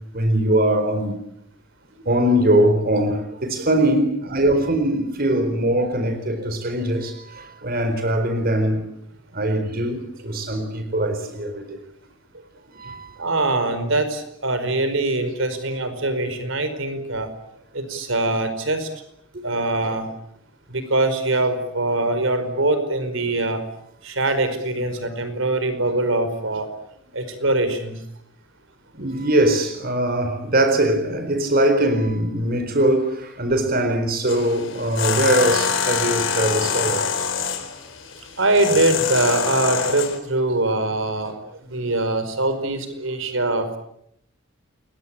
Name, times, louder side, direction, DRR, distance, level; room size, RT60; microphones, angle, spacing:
voice 1, 0.1-1.2 2.0-8.8 9.3-11.8 12.7-13.2 19.3-19.4 28.9-37.0, right 1 dB, 50° right, 8 dB, 4.3 m, -21 dB
voice 2, 13.2-17.3 17.7-18.9 19.4-20.1 20.7-23.6 24.0-26.7 27.1-28.0 38.3-41.3 41.7-43.8, right 2 dB, 70° right, 10 dB, 5.0 m, -23 dB
sound 1, 34.3-40.2, left 6 dB, 65° left, 4.5 m, -25 dB
29.0 x 22.5 x 8.8 m, 0.74 s
head